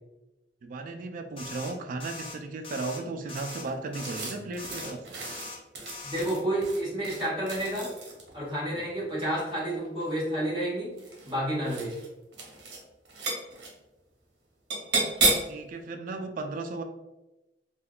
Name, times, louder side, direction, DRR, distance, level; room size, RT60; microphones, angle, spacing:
voice 1, 0.6-5.2 8.7-8.8 15.2-16.8, right 3 dB, 50° right, 5 dB, 0.3 m, -36 dB
sound 1, 1.4-1.7 2.0-2.4 2.6-3.0 3.3-3.6 3.9-4.3 4.6-4.9 5.2-5.6 5.9-6.2, left 3 dB, 30° left, 0.5 m, -41 dB
sound 2, 3.4-8.4 9.6-10.2 10.9-11.4 11.6-12.1 12.3-12.8 13.1-13.7 14.7-15.6, right 3 dB, 70° right, 0.8 m, -32 dB
voice 2, 6.0-7.9 8.3-10.9 11.2-11.9, right 1 dB, 30° right, -8 dB, 1.4 m, -30 dB
3.5 x 2.2 x 2.3 m, 0.99 s
head